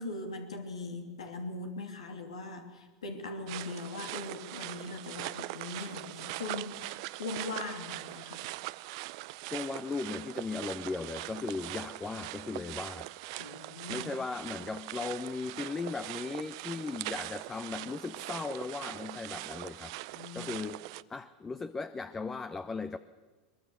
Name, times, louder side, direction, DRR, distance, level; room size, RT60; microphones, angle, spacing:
voice 1, 0.0-8.4 13.4-14.1 20.1-20.5, left 3 dB, 90° left, 4 dB, 2.8 m, -40 dB
sound 1, 3.5-21.0, right 20 dB, 65° right, 0.6 m, -41 dB
voice 2, 9.4-13.1 13.9-19.9 20.3-20.8 21.1-23.0, left 4 dB, 20° left, 10 dB, 0.9 m, -37 dB
22.0 x 22.0 x 6.9 m, 1.3 s
hypercardioid pair, 95°, 3 cm